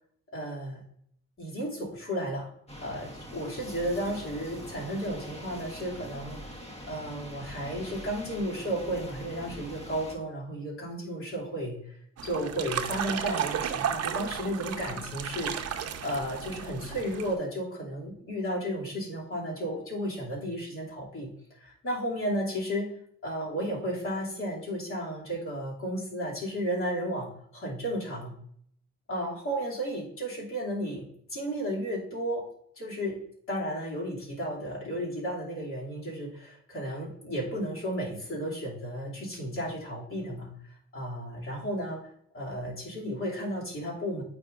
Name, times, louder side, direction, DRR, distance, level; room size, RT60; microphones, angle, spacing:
voice 1, 0.3-0.8 1.4-2.5 2.8-6.4 6.9-11.8 12.2-15.6 16.0-22.9 23.2-28.4 29.1-32.5 32.8-33.2 33.5-40.5 40.9-42.1 42.3-44.2, equal, 45° left, -3 dB, 2.7 m, -33 dB
sound 1, 2.7-10.2, equal, 20° left, 1.2 m, -43 dB
sound 2, 12.2-17.3, right 8 dB, 55° right, 0.7 m, -33 dB
8.9 x 4.9 x 2.5 m, 0.67 s
cardioid pair, 90°, 30 cm